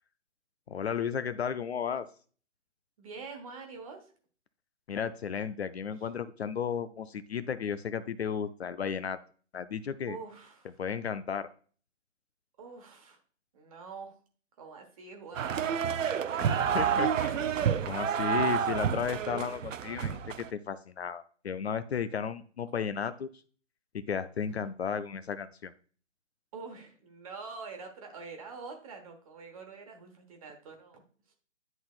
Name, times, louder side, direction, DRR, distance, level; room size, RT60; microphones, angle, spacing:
voice 1, 0.7-2.1 4.9-9.2 9.5-10.2 10.8-11.5 16.5-17.5 17.9-23.3 23.9-25.7, left 7 dB, 55° left, 13 dB, 0.5 m, -34 dB
voice 2, 3.0-4.1 6.0-6.1 10.1-10.8 12.6-13.2 13.5-14.2 14.6-16.4 16.8-17.1 18.3-18.5 24.3-24.6 26.5-31.0 31.3-31.4, right 4 dB, 30° right, 4 dB, 1.2 m, -46 dB
sound 1, 15.3-20.5, right 8 dB, 85° right, 0.6 m, -29 dB
10.5 x 3.9 x 2.4 m, 0.41 s
hypercardioid pair, 155°, 38 cm